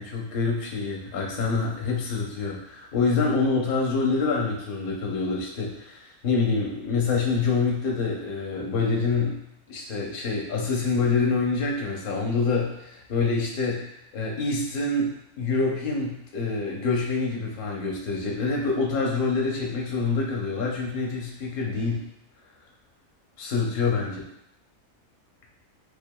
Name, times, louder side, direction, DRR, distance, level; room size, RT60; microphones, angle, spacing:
voice 1, 0.0-9.4 9.7-13.8 14.1-15.1 15.4-22.0 23.4-24.1, left 4 dB, 45° left, -1 dB, 0.8 m, -26 dB
6.6 x 2.3 x 2.3 m, 0.77 s
omnidirectional pair, 1.6 m